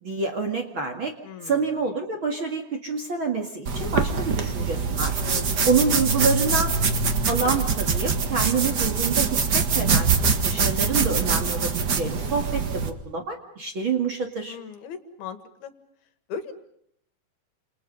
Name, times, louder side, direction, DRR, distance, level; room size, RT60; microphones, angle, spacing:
voice 1, 0.0-1.1 1.4-5.2 5.6-6.7 7.3-10.1 10.4-14.6, right 4 dB, 40° right, 3 dB, 2.3 m, -27 dB
voice 2, 1.2-1.7 5.2-5.6 14.5-15.7 16.3-16.5, left 6 dB, 70° left, 9 dB, 3.7 m, -37 dB
sound 1, 3.7-12.9, right 5 dB, 60° right, 1.0 m, -24 dB
30.0 x 28.0 x 5.5 m, 0.71 s
omnidirectional pair, 4.6 m